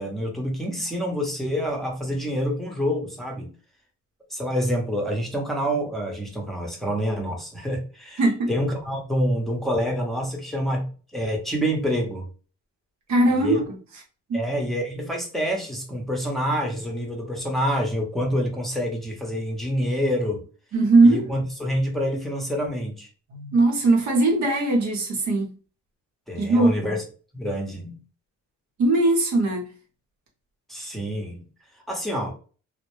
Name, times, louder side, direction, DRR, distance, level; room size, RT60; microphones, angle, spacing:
voice 1, 0.0-3.5 4.3-8.2 8.5-12.3 13.3-13.6 14.3-20.4 21.0-23.1 26.3-27.0 27.3-28.0 30.7-31.4 31.9-32.3, equal, ahead, 0.8 m, -27 dB
voice 2, 8.2-8.5 13.1-13.6 14.3-14.5 20.7-21.3 23.3-25.5 26.4-27.0 28.8-29.7, right 2 dB, 70° right, 0.9 m, -20 dB
2.1 x 2.1 x 3.0 m
cardioid pair, 90°, 30 cm